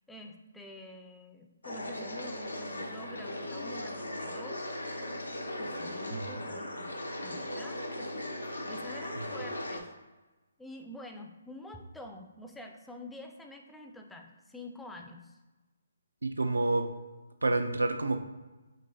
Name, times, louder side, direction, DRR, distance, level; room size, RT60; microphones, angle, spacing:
voice 1, 0.1-4.8 5.6-6.9 7.2-9.9 10.6-15.4, left 1 dB, 5° left, 3 dB, 0.4 m, -47 dB
sound 1, 1.6-9.8, left 1 dB, 90° left, 0.6 m, -38 dB
voice 2, 6.1-6.4 16.2-16.9 17.4-18.2, right 2 dB, 85° right, 7 dB, 0.4 m, -28 dB
5.1 x 3.0 x 2.7 m, 1.1 s
figure-of-eight pair, 140°, 0 cm